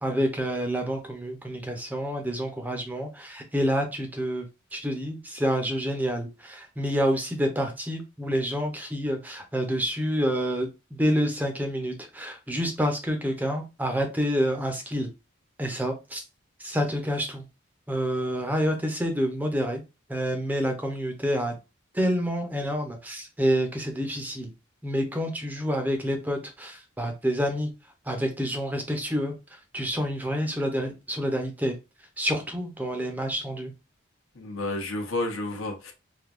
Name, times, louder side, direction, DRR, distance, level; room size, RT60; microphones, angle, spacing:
voice 1, 0.0-4.5 4.7-15.1 15.6-16.2 16.6-17.4 17.9-19.8 20.1-21.5 21.9-24.5 24.8-27.7 28.1-31.7 32.2-33.7, equal, 10° right, 0.5 m, -28 dB
voice 2, 34.3-35.9, left 2 dB, 85° left, 0.9 m, -31 dB
3.4 x 2.6 x 2.4 m
head